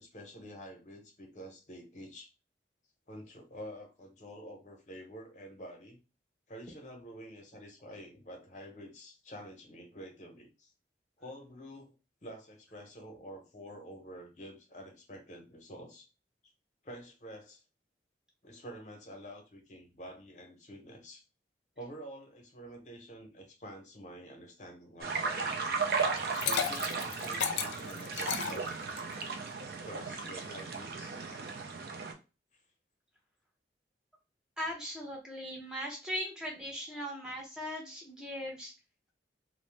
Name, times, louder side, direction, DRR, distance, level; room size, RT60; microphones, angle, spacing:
voice 1, 0.0-2.3 3.1-6.0 6.5-10.7 11.2-11.9 12.2-16.1 16.8-17.6 18.4-21.2 21.8-25.6 26.4-28.7 29.8-31.6, equal, 40° left, 2 dB, 0.7 m, -48 dB
sound 1, 25.0-32.1, right 4 dB, 55° right, 0.4 m, -35 dB
Liquid, 26.1-29.2, left 8 dB, 85° left, 0.4 m, -34 dB
voice 2, 34.6-38.7, equal, 5° right, -1 dB, 0.7 m, -39 dB
2.6 x 2.0 x 3.2 m, 0.30 s
head